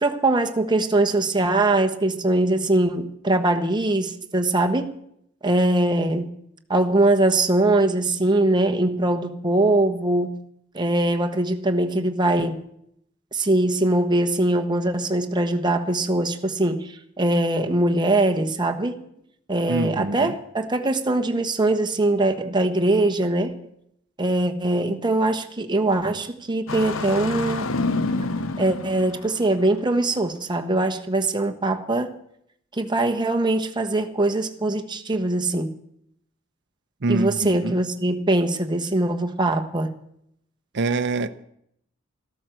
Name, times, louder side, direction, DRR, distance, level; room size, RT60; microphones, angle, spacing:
voice 1, 0.0-4.9 5.4-6.3 6.7-10.4 10.7-12.6 13.3-19.0 19.5-23.5 24.2-27.7 28.6-32.1 32.7-35.7 37.1-39.9, right 2 dB, 20° right, 1.2 m, -22 dB
voice 2, 19.7-20.3 37.0-37.8 40.7-41.4, right 3 dB, 60° right, 0.8 m, -25 dB
Engine starting, 26.7-29.7, left 3 dB, 80° left, 0.9 m, -27 dB
13.5 x 13.0 x 7.7 m
head